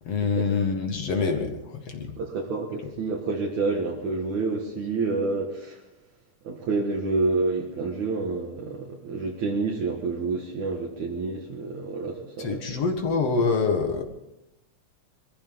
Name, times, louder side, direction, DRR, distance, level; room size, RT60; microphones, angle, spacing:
voice 1, 0.0-2.2 12.4-14.0, left 4 dB, 55° left, 4 dB, 2.6 m, -26 dB
voice 2, 2.2-5.8 6.4-12.8, right 3 dB, 70° right, -2 dB, 3.0 m, -28 dB
23.0 x 15.0 x 4.0 m, 0.88 s
omnidirectional pair, 3.6 m